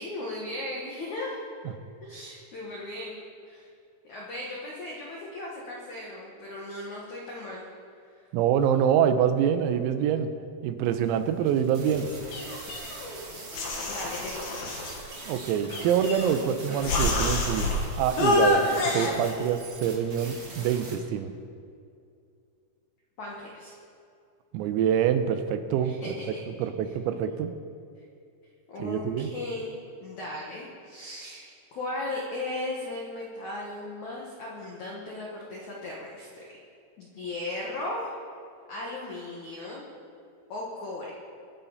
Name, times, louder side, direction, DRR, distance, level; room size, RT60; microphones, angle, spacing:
voice 1, 0.0-1.5 2.0-3.7 4.1-7.6 13.9-14.8 23.2-23.7 25.8-26.4 28.7-29.7 30.0-36.6 37.0-38.1 38.7-39.8 40.5-41.1, left 2 dB, 80° left, -3 dB, 1.7 m, -37 dB
voice 2, 8.3-10.3 10.6-12.1 15.3-21.3 24.5-25.9 26.5-27.5 28.8-29.3, right 8 dB, 85° right, 9 dB, 3.6 m, -25 dB
sound 1, 10.9-21.0, right 2 dB, 50° right, 1.5 m, -42 dB
sound 2, 12.3-13.2 13.5-15.0 15.7-16.4 16.8-17.8 18.2-19.1, left 2 dB, 60° left, 3.1 m, -27 dB
23.5 x 9.9 x 4.1 m, 2.4 s
omnidirectional pair, 6.0 m